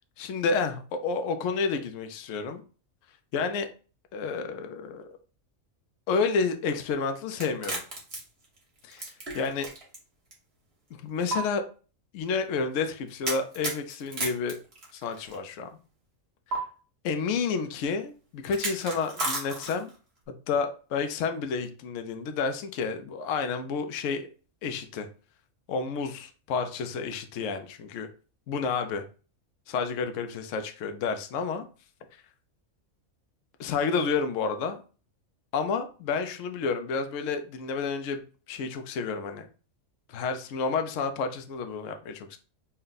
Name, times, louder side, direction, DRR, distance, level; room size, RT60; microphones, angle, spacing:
voice 1, 0.2-2.6 3.3-3.7 4.1-5.1 6.1-7.8 8.8-9.0 9.3-9.7 11.0-11.6 12.1-14.6 14.9-15.7 17.0-19.9 20.5-24.3 24.6-25.1 25.7-28.1 28.5-29.0 29.7-31.6 33.6-34.8 35.5-38.2 38.5-39.5 40.1-42.4, left 5 dB, 70° left, 7 dB, 0.9 m, -30 dB
sound 1, 7.3-10.0 10.3-10.4 11.3-11.4 13.2-15.4 16.5-16.6 18.5-20.0, right 2 dB, 50° right, 1.4 m, -33 dB
4.2 x 2.2 x 3.9 m, 0.37 s
omnidirectional pair, 1.4 m